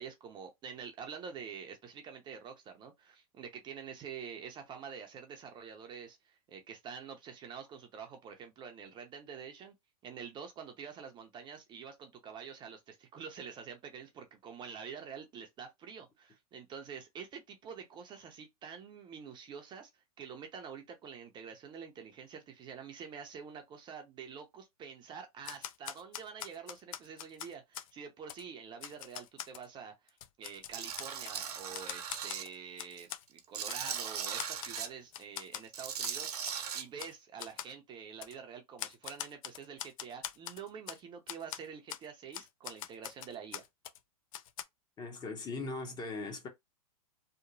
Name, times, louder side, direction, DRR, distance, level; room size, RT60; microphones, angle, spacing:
voice 1, 0.0-9.7 10.0-19.9 20.2-43.7, right 6 dB, 25° right, 0.5 m, -47 dB
Typewriter, 25.4-27.9 28.3-28.4 28.8-29.7 30.1-31.4 31.7-33.2 33.7-34.0 34.4-34.9 35.1-35.7 36.0-36.2 36.5-36.6 37.0-37.1 37.4-37.7 38.2-38.4 38.8-41.0 41.3-41.6 41.9-42.1 42.3-44.0 44.3-44.6, left 11 dB, 60° left, 0.4 m, -43 dB
Tools, 30.7-32.4 32.9-34.9 35.6-36.8, right 8 dB, 80° right, 0.8 m, -38 dB
voice 2, 45.0-46.5, left 3 dB, 20° left, 0.7 m, -39 dB
2.9 x 2.1 x 2.6 m
hypercardioid pair, 120°, 20 cm